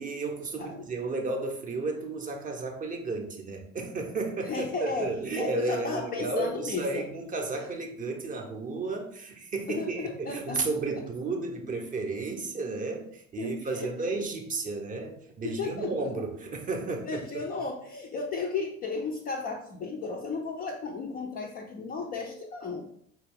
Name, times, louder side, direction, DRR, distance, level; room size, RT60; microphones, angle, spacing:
voice 1, 0.0-17.4, right 3 dB, 20° right, 3 dB, 0.6 m, -33 dB
voice 2, 4.4-7.0 9.7-10.6 13.4-13.9 15.4-15.9 17.1-22.8, left 4 dB, 25° left, 2 dB, 0.4 m, -34 dB
4.3 x 2.4 x 3.4 m, 0.66 s
figure-of-eight pair, 65°, 40 cm